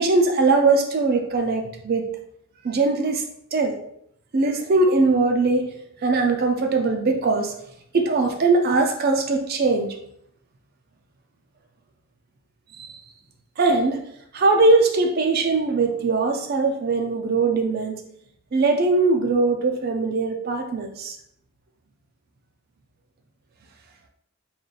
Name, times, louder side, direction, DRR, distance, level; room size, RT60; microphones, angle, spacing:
voice 1, 0.0-2.1 2.6-3.2 3.5-3.8 4.3-5.7 6.0-7.6 7.9-10.0 12.8-12.9 13.6-14.0 14.3-18.0 18.5-21.2, right 3 dB, 45° right, 4 dB, 0.4 m, -21 dB
3.8 x 2.4 x 3.8 m, 0.71 s
head